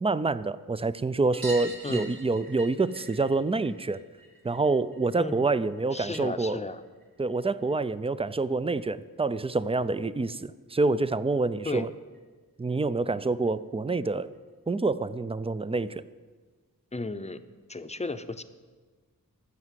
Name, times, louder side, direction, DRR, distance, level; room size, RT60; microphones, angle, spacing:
voice 1, 0.0-4.0 4.4-6.6 7.2-11.9 12.6-14.3 14.7-16.0, right 3 dB, 15° right, 15 dB, 0.4 m, -27 dB
sound 1, 1.3-6.4 6.7-7.9 9.2-9.3 9.5-9.6 9.9-10.0 11.3-11.4 11.7-11.8 12.1-12.2 13.5-13.6 14.3-14.4, right 2 dB, 80° right, 2.3 m, -45 dB
voice 2, 5.9-6.8 11.6-11.9 16.9-17.4 17.7-18.4, left 2 dB, 20° left, 10 dB, 0.7 m, -34 dB
14.0 x 6.4 x 7.6 m, 1.4 s
wide cardioid pair, 70°, 35 cm